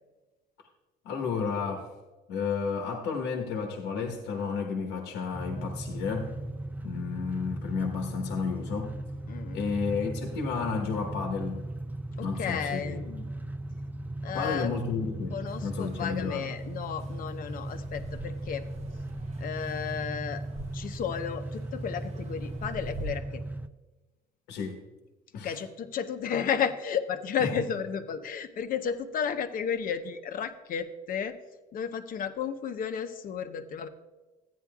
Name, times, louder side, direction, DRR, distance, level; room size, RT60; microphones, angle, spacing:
voice 1, 1.0-1.9 2.3-6.3 6.8-8.9 9.5-11.6 12.2-13.2 14.3-16.5 24.5-24.8 25.3-25.6 27.4-27.5, left 5 dB, 90° left, 2 dB, 1.2 m, -32 dB
sound 1, 5.3-23.7, right 1 dB, 10° right, 0.4 m, -37 dB
voice 2, 9.3-9.7 12.2-13.0 14.2-14.7 15.3-18.6 19.4-20.4 20.7-23.4 25.3-31.4 31.7-33.9, left 7 dB, 55° left, 8 dB, 0.8 m, -33 dB
sound 2, 15.4-23.2, right 2 dB, 40° right, 0.7 m, -47 dB
14.0 x 9.5 x 2.4 m, 1.2 s
cardioid pair, 110°, 17 cm